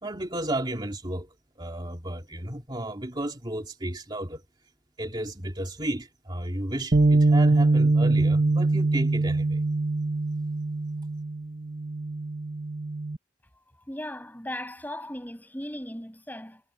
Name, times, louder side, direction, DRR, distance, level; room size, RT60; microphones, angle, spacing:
voice 1, 0.0-4.4 5.0-9.6, right 1 dB, 25° right, 2.9 m, -33 dB
Bass guitar, 6.9-13.2, right 2 dB, 50° right, 1.2 m, -23 dB
voice 2, 13.9-16.6, left 1 dB, 10° left, 7.6 m, -37 dB
head